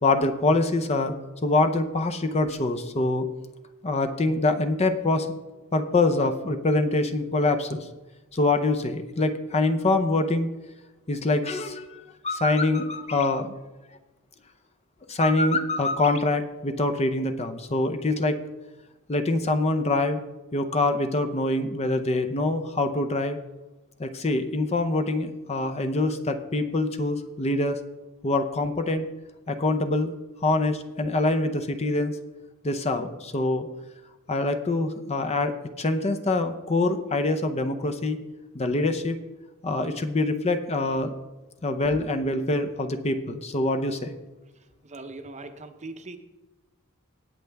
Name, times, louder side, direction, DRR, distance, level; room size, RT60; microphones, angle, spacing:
voice 1, 0.0-1.1 1.4-3.3 3.8-5.3 5.7-7.9 8.3-10.5 11.1-13.5 15.1-18.4 19.1-20.2 20.5-23.4 24.0-27.8 28.2-29.1 29.5-30.1 30.4-32.2 32.6-33.7 34.3-38.2 38.5-39.2 39.6-41.1 41.6-44.2, left 2 dB, 30° left, 7 dB, 0.6 m, -25 dB
voice 2, 44.8-46.2, right 2 dB, 30° right, 7 dB, 0.8 m, -40 dB
17.5 x 6.6 x 3.4 m, 1.0 s
head